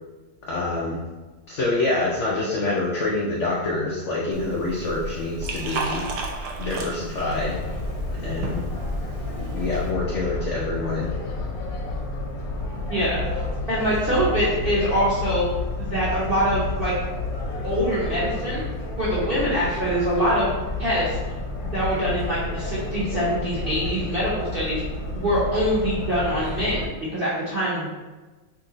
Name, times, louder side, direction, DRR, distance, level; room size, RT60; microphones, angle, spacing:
voice 1, 0.5-1.0 1.5-6.1 6.6-7.6 8.2-8.6 9.5-11.1, left 2 dB, 90° left, -5 dB, 0.6 m, -26 dB
Liquid, 4.3-9.9, right 2 dB, 75° right, 1.1 m, -33 dB
sound 1, 7.2-26.9, left 2 dB, 65° left, 0.9 m, -30 dB
voice 2, 12.9-13.2 13.7-15.4 15.8-16.9 17.6-18.6 19.0-20.5 20.8-21.2 21.6-24.8 25.1-27.9, equal, 50° right, -9 dB, 0.6 m, -24 dB
2.8 x 2.6 x 3.8 m, 1.3 s
omnidirectional pair, 1.9 m